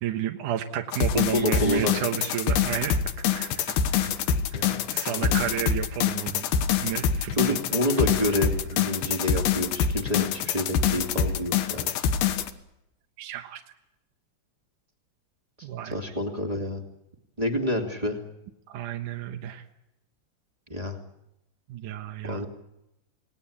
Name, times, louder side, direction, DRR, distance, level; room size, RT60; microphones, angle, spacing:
voice 1, 0.0-6.5 6.8-7.6 7.9-8.3 13.2-13.6 15.6-16.0 18.7-19.6 21.7-22.5, right 11 dB, 65° right, 4 dB, 2.2 m, -32 dB
sound 1, 0.9-12.5, left 7 dB, 70° left, 3.0 m, -25 dB
voice 2, 1.3-1.9 4.5-5.4 7.4-11.9 15.8-16.8 17.4-18.2 20.7-21.0 22.2-22.4, left 1 dB, 15° right, 3 dB, 1.5 m, -28 dB
28.5 x 19.0 x 8.8 m, 0.89 s
omnidirectional pair, 4.9 m